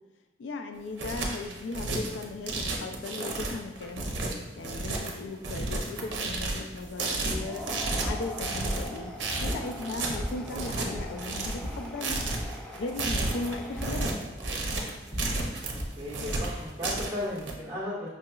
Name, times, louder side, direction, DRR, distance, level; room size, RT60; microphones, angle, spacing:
voice 1, 0.4-4.1 4.6-7.7 8.0-9.1 9.4-12.3 12.7-14.1, left 3 dB, 80° left, 6 dB, 0.3 m, -37 dB
sound 1, 0.7-17.5, right 2 dB, 75° right, 0.6 m, -32 dB
sound 2, 6.1-16.9, equal, 30° left, 1.0 m, -40 dB
sound 3, 7.3-14.5, equal, 5° left, 0.3 m, -43 dB
voice 2, 10.4-10.8 15.7-18.1, left 1 dB, 15° right, -7 dB, 1.4 m, -36 dB
5.4 x 2.9 x 2.3 m, 1.1 s
head